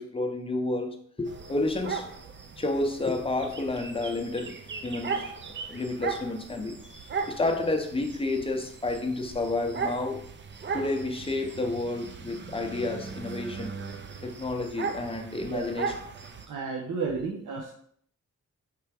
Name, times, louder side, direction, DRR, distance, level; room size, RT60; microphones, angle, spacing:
voice 1, 0.0-2.1 2.6-4.6 4.8-5.2 5.7-10.2 10.7-13.7 14.2-15.9, left 2 dB, 20° left, 4 dB, 0.6 m, -30 dB
sound 1, 1.2-16.5, right 5 dB, 40° right, 0.4 m, -38 dB
voice 2, 16.5-17.7, right 4 dB, 75° right, -1 dB, 0.7 m, -32 dB
4.5 x 3.3 x 3.4 m, 0.64 s
wide cardioid pair, 105°, 31 cm